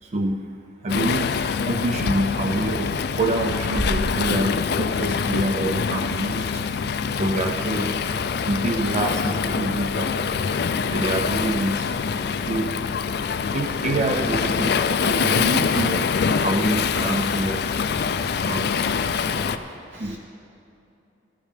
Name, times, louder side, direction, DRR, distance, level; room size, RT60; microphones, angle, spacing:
voice 1, 0.0-6.6 7.2-7.9 8.4-10.2 10.9-11.9 12.5-12.8 13.4-16.1 16.4-17.7 18.4-18.8 20.0-20.2, right 1 dB, 35° right, 4 dB, 0.4 m, -27 dB
Waves surf, 0.9-19.6, left 6 dB, 60° left, 0.4 m, -24 dB
sound 1, 3.8-5.8, equal, 5° left, 1.1 m, -32 dB
voice 2, 5.1-5.4 7.3-8.1 8.9-9.2 12.0-12.2 18.3-18.5 18.9-20.2, right 1 dB, 80° right, -3 dB, 2.6 m, -46 dB
14.5 x 13.5 x 3.3 m, 2.8 s
head